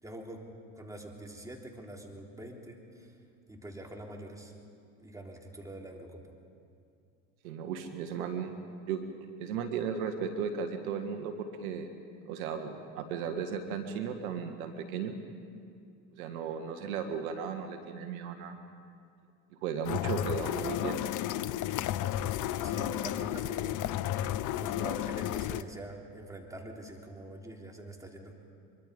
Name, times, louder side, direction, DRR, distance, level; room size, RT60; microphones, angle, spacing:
voice 1, 0.0-0.5 0.7-3.1 3.5-4.5 5.0-6.3 22.6-23.8 24.6-28.3, right 1 dB, 10° right, 0 dB, 3.5 m, -45 dB
voice 2, 7.4-8.5 8.9-11.9 12.3-15.1 16.1-18.6 19.6-21.0, right 7 dB, 75° right, 7 dB, 1.8 m, -35 dB
sound 1, 19.8-25.6, left 12 dB, 45° left, 0.8 m, -32 dB
24.0 x 23.0 x 5.3 m, 2.4 s
hypercardioid pair, 85°, 42 cm